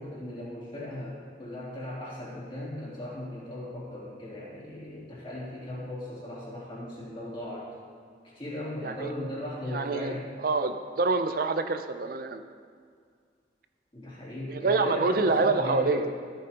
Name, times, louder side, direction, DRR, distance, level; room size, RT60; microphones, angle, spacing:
voice 1, 0.0-7.7 8.2-10.3 13.9-16.1, left 1 dB, 30° left, -7 dB, 2.8 m, -37 dB
voice 2, 8.8-9.1 9.7-10.1 10.4-12.4 14.5-16.0, right 3 dB, 55° right, 8 dB, 0.5 m, -26 dB
14.0 x 8.7 x 2.9 m, 2.1 s
head